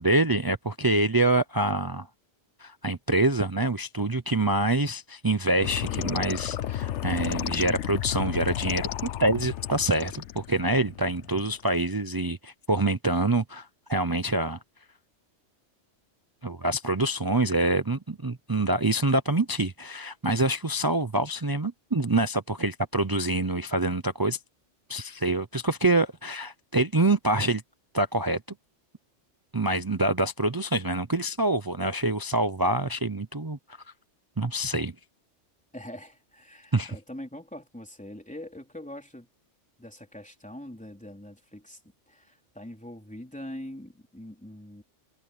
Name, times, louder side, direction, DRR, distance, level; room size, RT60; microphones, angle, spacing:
voice 1, 0.0-2.1 2.6-14.6 16.4-24.4 24.9-27.6 27.9-28.4 29.5-33.6 34.4-34.9 36.7-37.0, right 2 dB, 25° right, 0.6 m, -26 dB
sound 1, 5.6-11.6, left 11 dB, 75° left, 1.0 m, -33 dB
voice 2, 35.7-39.3 39.8-41.8 42.1-44.8, left 1 dB, 5° left, 3.7 m, -43 dB
omnidirectional pair, 1.2 m